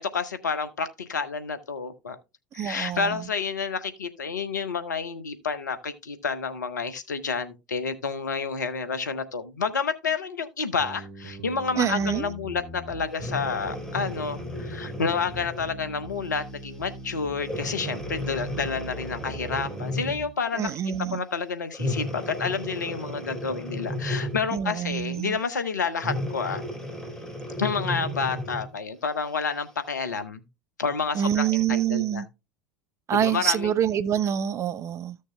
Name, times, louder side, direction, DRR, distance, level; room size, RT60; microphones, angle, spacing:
voice 1, 0.0-2.2 2.5-20.7 21.1-26.6 27.6-30.4 30.8-32.2 33.1-33.7, left 5 dB, 75° left, 1.0 m, -29 dB
voice 2, 2.5-3.3 11.8-12.3 20.5-21.2 24.5-25.4 31.1-32.3 33.1-35.2, right 9 dB, 30° right, 0.5 m, -26 dB
sound 1, 10.8-20.3, right 1 dB, 60° right, 2.1 m, -41 dB
Breathing, 13.1-15.7 16.4-16.6 17.4-20.3 21.7-24.6 26.0-28.7 29.3-29.4, left 1 dB, 5° left, 3.3 m, -34 dB
14.5 x 6.5 x 2.2 m
figure-of-eight pair, 75°, 10 cm